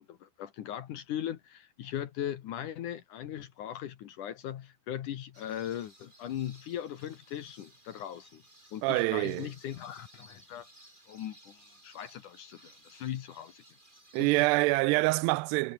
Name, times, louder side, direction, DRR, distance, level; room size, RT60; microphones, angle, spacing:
voice 1, 0.0-8.4 8.7-10.7 11.1-13.6, left 11 dB, 65° left, 2.4 m, -39 dB
sound 1, 5.3-14.6, right 1 dB, 10° right, 5.7 m, -58 dB
voice 2, 8.8-9.5 14.1-15.7, right 23 dB, 90° right, 2.7 m, -26 dB
omnidirectional pair, 4.7 m